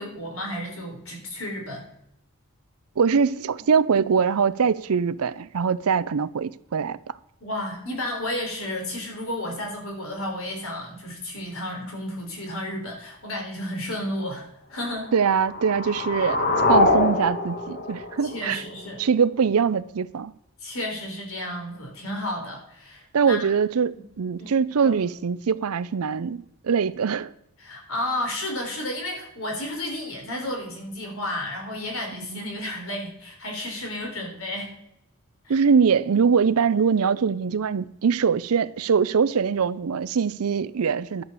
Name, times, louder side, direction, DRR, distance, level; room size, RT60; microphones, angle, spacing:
voice 1, 0.0-1.9 3.6-3.7 7.4-15.1 18.2-19.0 20.6-23.5 24.0-24.1 24.4-24.5 24.8-25.0 27.6-34.7 35.4-35.6, left 1 dB, 65° left, 3.9 m, -32 dB
voice 2, 3.0-7.1 15.1-18.6 19.0-20.3 23.1-27.3 32.3-32.4 35.5-41.2, right 6 dB, 75° right, 0.5 m, -23 dB
sound 1, 15.1-19.1, left 2 dB, 45° left, 1.4 m, -24 dB
11.5 x 6.5 x 6.7 m
head